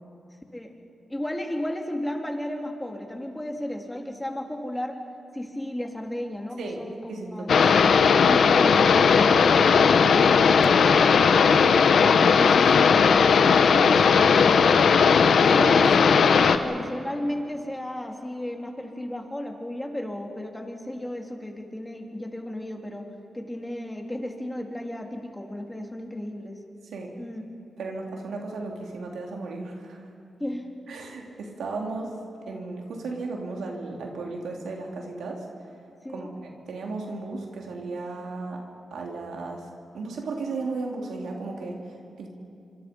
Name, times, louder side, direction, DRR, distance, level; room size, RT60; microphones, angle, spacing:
voice 1, 1.1-5.0 5.3-7.9 8.3-11.5 12.2-14.9 15.5-23.1 23.3-26.6 27.2-27.4 30.4-30.7 36.0-36.3, left 1 dB, 10° left, 2 dB, 3.4 m, -34 dB
voice 2, 6.6-7.8 15.6-15.9 26.9-27.1 27.8-30.1 30.9-32.2 32.5-35.5 36.1-36.3 36.7-38.6 38.9-39.7 39.9-42.3, right 3 dB, 90° right, 1 dB, 3.4 m, -35 dB
sound 1, 7.5-16.6, left 6 dB, 75° left, 1.1 m, -17 dB
26.0 x 26.0 x 5.4 m, 2.6 s
cardioid pair, 70°, 0 cm